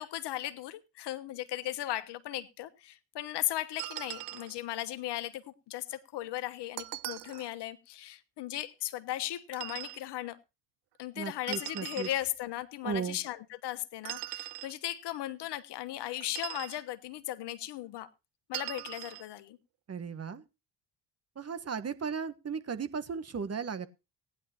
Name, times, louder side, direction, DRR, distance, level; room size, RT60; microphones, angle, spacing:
voice 1, 0.0-10.4 11.0-18.1 18.5-19.6, left 14 dB, 55° left, 1.2 m, -37 dB
sound 1, 3.8-4.5 6.8-7.5 9.5-10.0 11.5-12.2 14.0-14.7 16.2-16.8 18.5-19.2, right 19 dB, 60° right, 0.7 m, -40 dB
voice 2, 11.1-12.1 12.8-13.2 19.9-20.4 21.4-23.9, right 6 dB, 30° right, 1.3 m, -36 dB
18.0 x 10.0 x 2.9 m
figure-of-eight pair, 50°, 49 cm